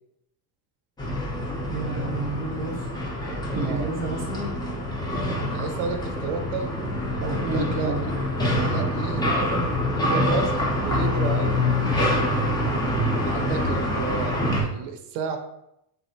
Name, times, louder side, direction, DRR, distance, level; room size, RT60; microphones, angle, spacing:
sound 1, 1.0-14.6, left 1 dB, 10° left, 0.4 m, -26 dB
voice 1, 1.7-2.9 3.5-4.6 7.2-8.0, right 3 dB, 30° right, 1 dB, 0.7 m, -30 dB
voice 2, 5.5-6.7 7.3-8.1 8.7-10.5 10.8-12.5 13.2-14.3 14.6-15.4, right 5 dB, 80° right, 5 dB, 0.6 m, -31 dB
3.2 x 2.4 x 2.7 m, 0.80 s
cardioid pair, 130°, 44 cm